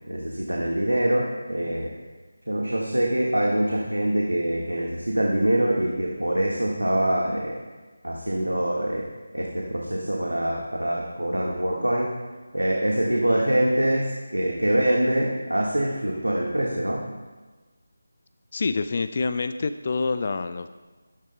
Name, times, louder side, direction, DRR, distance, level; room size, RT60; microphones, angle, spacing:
voice 1, 0.1-1.9 2.5-7.6 8.0-9.1 9.3-12.1 12.5-17.0, right 1 dB, 80° right, -2 dB, 1.5 m, -24 dB
voice 2, 18.5-20.7, left 4 dB, 40° left, 10 dB, 0.4 m, -26 dB
13.5 x 13.0 x 2.2 m, 1.3 s
figure-of-eight pair, 160°, 0 cm